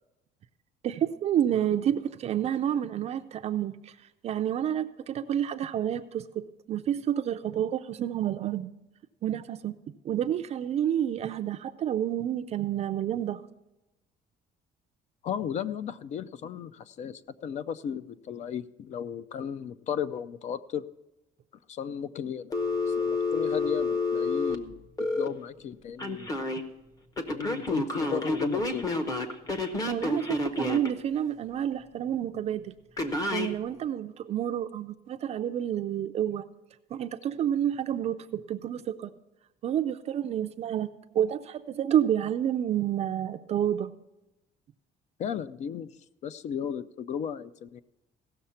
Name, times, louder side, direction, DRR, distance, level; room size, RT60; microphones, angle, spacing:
voice 1, 0.8-4.0 4.2-8.7 9.2-9.7 10.0-13.4 29.9-32.7 33.3-36.4 36.9-39.1 39.6-43.9, right 10 dB, 40° right, 8 dB, 0.4 m, -29 dB
voice 2, 15.2-20.8 21.7-22.6 22.9-26.3 27.3-28.8 45.2-45.9 46.2-47.8, left 8 dB, 45° left, 15 dB, 0.4 m, -35 dB
Telephone, 22.5-25.3 26.0-26.6 27.2-30.9 33.0-33.5, left 3 dB, 20° left, 0.8 m, -29 dB
16.5 x 6.6 x 5.6 m, 0.98 s
cardioid pair, 170°, 16 cm